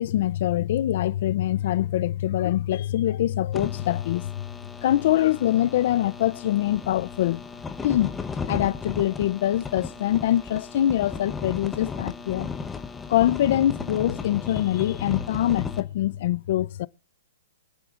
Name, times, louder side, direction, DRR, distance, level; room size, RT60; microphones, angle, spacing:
voice 1, 0.0-4.5 4.8-7.4 7.8-8.1 8.5-12.5 13.1-16.9, left 13 dB, 55° left, 0.5 m, -24 dB
sound 1, 3.5-15.8, left 5 dB, 10° left, 0.9 m, -35 dB
25.0 x 9.9 x 2.5 m
hypercardioid pair, 155°, 0 cm